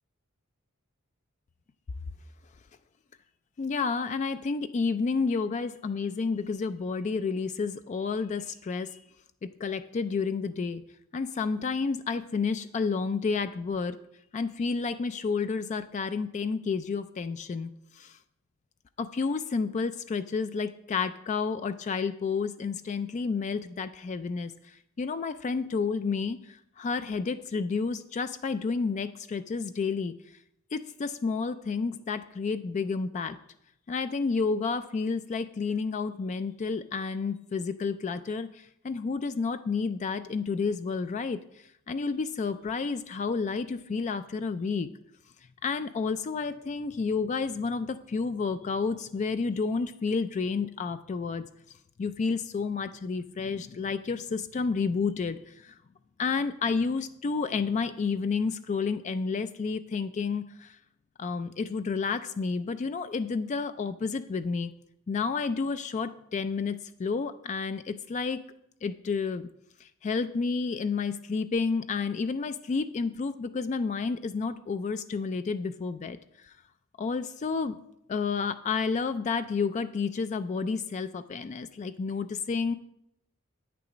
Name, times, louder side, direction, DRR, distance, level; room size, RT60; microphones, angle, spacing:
voice 1, 3.6-9.0 9.4-10.8 11.1-14.0 14.3-18.2 19.0-30.1 30.7-33.4 33.9-44.9 45.6-51.4 52.0-55.7 56.2-60.8 61.2-64.7 65.1-68.4 68.8-69.5 69.8-76.5 77.0-77.8 78.1-82.7, left 4 dB, 35° left, 11 dB, 0.3 m, -30 dB
8.7 x 6.8 x 5.0 m, 0.78 s
head